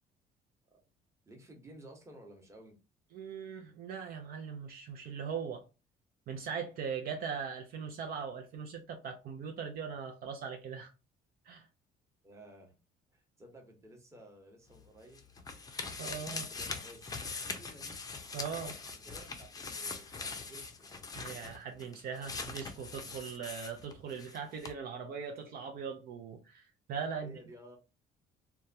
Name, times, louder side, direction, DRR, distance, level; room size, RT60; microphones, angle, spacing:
voice 1, 1.3-2.8 12.2-12.8 13.1-15.2 16.1-18.0 19.0-21.3 27.2-27.8, right 1 dB, 15° right, 1.0 m, -55 dB
voice 2, 3.1-5.6 6.3-10.9 11.5-11.7 16.0-16.5 18.3-18.8 21.1-27.4, right 6 dB, 60° right, 0.5 m, -40 dB
sound 1, 14.7-24.4 24.6-24.7, left 4 dB, 20° left, 0.5 m, -42 dB
2.9 x 2.2 x 2.5 m
cardioid pair, 110°, 17 cm